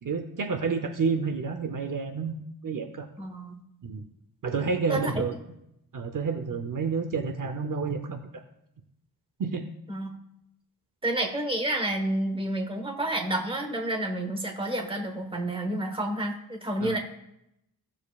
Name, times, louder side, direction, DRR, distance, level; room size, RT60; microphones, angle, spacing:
voice 1, 0.0-3.1 3.8-4.0 4.4-5.3 5.9-8.2 9.4-9.6 16.8-17.0, right 5 dB, 55° right, 7 dB, 0.7 m, -29 dB
voice 2, 3.2-3.6 4.9-5.1 9.9-10.1 11.0-17.0, right 1 dB, 15° right, 3 dB, 1.1 m, -29 dB
15.5 x 7.2 x 2.3 m, 0.81 s
wide cardioid pair, 175°, 38 cm